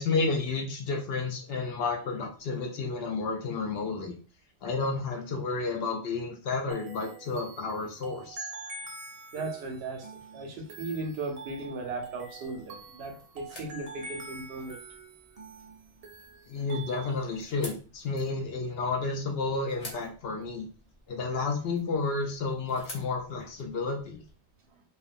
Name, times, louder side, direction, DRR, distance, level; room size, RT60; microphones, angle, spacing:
voice 1, 0.0-4.1 4.6-8.5 16.5-20.7 21.1-24.2, left 3 dB, 65° left, 1 dB, 0.7 m, -31 dB
sound 1, 6.7-17.4, right 3 dB, 50° right, 0.4 m, -45 dB
voice 2, 9.3-14.8, right 3 dB, 70° right, 3 dB, 0.8 m, -37 dB
sound 2, 11.5-24.3, left 1 dB, 35° left, 0.8 m, -51 dB
2.4 x 2.1 x 2.4 m, 0.38 s
omnidirectional pair, 1.2 m